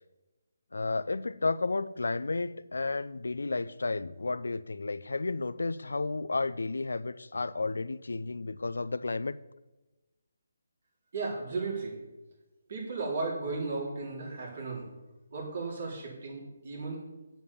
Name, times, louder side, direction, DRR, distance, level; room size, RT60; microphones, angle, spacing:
voice 1, 0.7-9.4, left 3 dB, 85° left, 15 dB, 0.5 m, -32 dB
voice 2, 11.1-11.9 12.7-14.8 15.3-17.0, right 3 dB, 50° right, -1 dB, 4.3 m, -35 dB
9.0 x 6.9 x 7.1 m, 1.1 s
hypercardioid pair, 160°, 0 cm